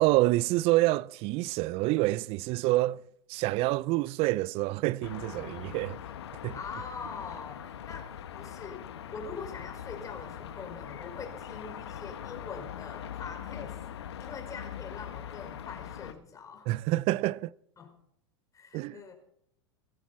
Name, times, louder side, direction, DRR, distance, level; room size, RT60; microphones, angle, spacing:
voice 1, 0.0-6.0 6.4-6.5 16.7-17.5 18.7-19.0, right 19 dB, 45° right, 0.5 m, -27 dB
sound 1, 5.0-16.1, left 9 dB, 75° left, 1.2 m, -42 dB
voice 2, 6.5-16.7 17.8-18.0 18.5-19.1, left 5 dB, 25° left, 5.2 m, -43 dB
18.0 x 14.5 x 4.2 m
hypercardioid pair, 90°, 14 cm